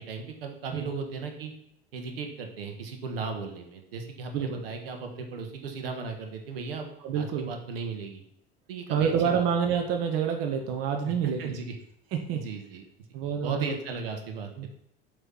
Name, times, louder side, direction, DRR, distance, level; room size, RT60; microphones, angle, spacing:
voice 1, 0.0-1.5 1.9-6.9 7.1-8.2 8.7-9.4 11.0-11.1 11.4-11.8 12.3-12.8 13.4-14.5, right 5 dB, 75° right, 4 dB, 1.2 m, -36 dB
voice 2, 7.0-7.5 8.9-11.6 12.1-12.4 13.1-13.7 14.6-14.7, right 7 dB, 50° right, 4 dB, 0.9 m, -28 dB
8.0 x 3.2 x 5.5 m, 0.74 s
figure-of-eight pair, 70°, 30 cm